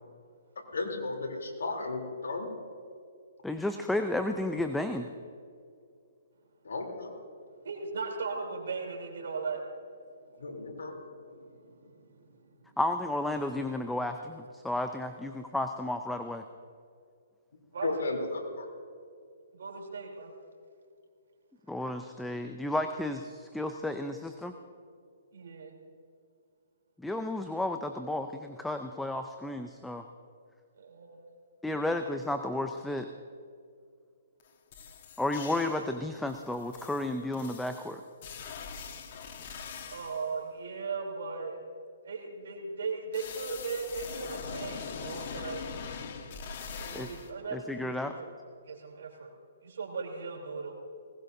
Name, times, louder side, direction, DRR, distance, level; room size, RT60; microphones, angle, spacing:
voice 1, 0.7-2.5 6.6-7.1 10.4-10.9 17.8-18.7, left 2 dB, 80° left, 1 dB, 3.3 m, -34 dB
voice 2, 3.4-5.1 12.8-16.4 21.7-24.5 27.0-30.0 31.6-33.1 35.2-38.0 39.5-39.6 46.9-47.1 47.5-48.1, left 1 dB, 5° left, 7 dB, 0.5 m, -32 dB
voice 3, 7.6-9.6 10.5-12.7 17.7-17.9 19.5-20.3 25.3-25.7 30.8-31.2 31.8-32.0 39.9-41.6 42.0-45.6 46.7-48.2 48.7-49.3 49.6-50.7, right 4 dB, 70° right, 1 dB, 3.5 m, -38 dB
sound 1, 34.4-34.5 34.7-35.9 36.3-40.3 43.1-47.3, left 6 dB, 50° left, 1.4 m, -42 dB
19.5 x 18.5 x 2.7 m, 2.3 s
hypercardioid pair, 145°, 0 cm